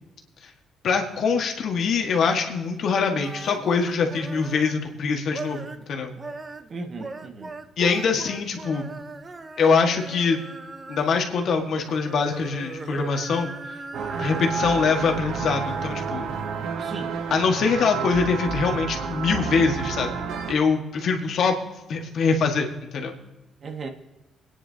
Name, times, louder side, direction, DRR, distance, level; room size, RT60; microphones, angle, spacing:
voice 1, 0.8-6.1 7.8-8.9 9.6-10.4 10.9-13.8 14.2-16.3 17.3-20.1 20.5-21.6 21.9-23.1, left 5 dB, 65° left, 3 dB, 1.7 m, -23 dB
sound 1, 3.0-4.8 5.2-5.9 6.1-11.3 11.7-16.7, right 3 dB, 30° right, 0.9 m, -39 dB
voice 2, 6.7-7.5 16.8-17.2 23.6-23.9, right 3 dB, 50° right, 4 dB, 1.6 m, -36 dB
sound 2, 13.9-20.5, right 5 dB, 80° right, 1.0 m, -30 dB
23.5 x 9.9 x 2.8 m, 1.1 s
cardioid pair, 90°, 0 cm